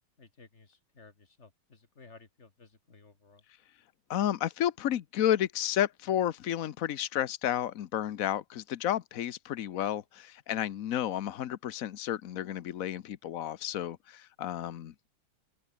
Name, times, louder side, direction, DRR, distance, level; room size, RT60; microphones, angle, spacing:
voice 1, 0.2-3.4, left 4 dB, 30° left, 2.8 m, -56 dB
voice 2, 4.1-14.9, left 11 dB, 65° left, 0.8 m, -31 dB
open air
omnidirectional pair, 2.4 m